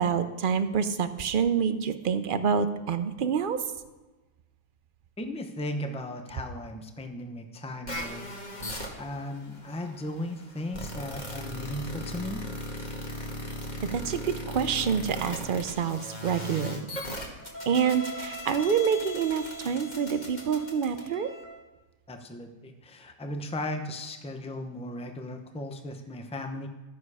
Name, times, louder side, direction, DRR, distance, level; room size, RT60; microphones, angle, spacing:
voice 1, 0.0-3.6 13.8-16.8 17.7-21.3, right 7 dB, 50° right, 10 dB, 0.7 m, -27 dB
voice 2, 5.2-8.3 8.6-12.4 22.1-26.7, left 1 dB, 5° left, 5 dB, 0.5 m, -36 dB
sound 1, 7.9-21.4, equal, 30° left, 1.7 m, -38 dB
13.5 x 7.1 x 4.8 m, 1.2 s
omnidirectional pair, 1.5 m